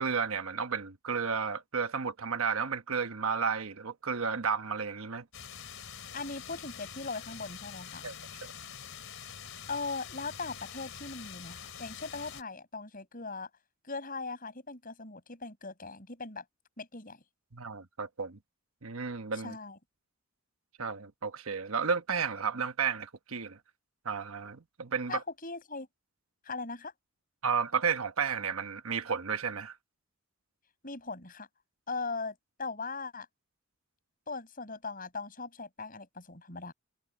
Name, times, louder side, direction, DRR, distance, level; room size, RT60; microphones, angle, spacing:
voice 1, 0.0-5.2 8.0-8.1 8.4-8.5 17.5-18.4 18.8-19.6 20.8-23.6 24.0-25.2 27.4-29.8, right 6 dB, 80° right, 1.1 m, -32 dB
sound 1, 5.3-12.4, left 8 dB, 65° left, 4.5 m, -45 dB
voice 2, 6.1-8.0 9.7-13.5 13.8-16.4 16.8-17.2 19.3-19.8 25.1-25.9 26.4-26.9 30.8-31.5 31.9-33.3 34.3-36.7, left 3 dB, 40° left, 7.6 m, -39 dB
head